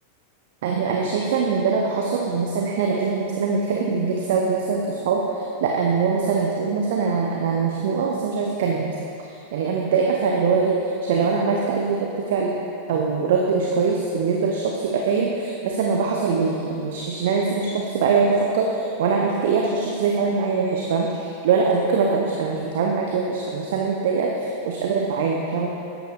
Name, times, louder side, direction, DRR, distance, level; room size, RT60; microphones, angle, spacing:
voice 1, 0.6-9.0 9.3-12.6 12.9-25.7, right 5 dB, 55° right, -1 dB, 0.7 m, -23 dB
12.5 x 8.9 x 2.4 m, 2.7 s
figure-of-eight pair, 90°, 0 cm